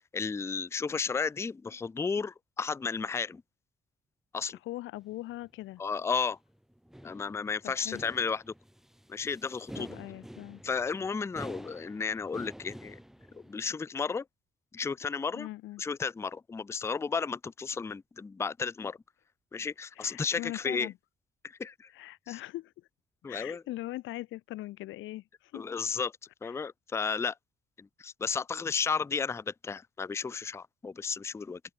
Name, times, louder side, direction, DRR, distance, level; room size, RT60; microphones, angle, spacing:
voice 1, 0.1-3.4 4.3-4.6 5.8-6.4 7.0-8.5 9.1-9.9 10.6-13.0 13.3-14.2 14.7-15.5 15.8-19.0 19.5-20.9 21.4-21.9 22.3-22.4 23.2-23.6 25.5-26.1 26.4-27.3 27.8-31.6, left 5 dB, 15° left, 0.3 m, -33 dB
voice 2, 4.6-5.8 7.6-8.0 9.8-10.6 15.3-15.8 20.0-20.9 21.9-22.9 23.2-25.6 26.4-26.6, left 16 dB, 80° left, 0.6 m, -41 dB
sound 1, 5.1-13.7, equal, ahead, 1.5 m, -48 dB
open air
cardioid pair, 90°, 20 cm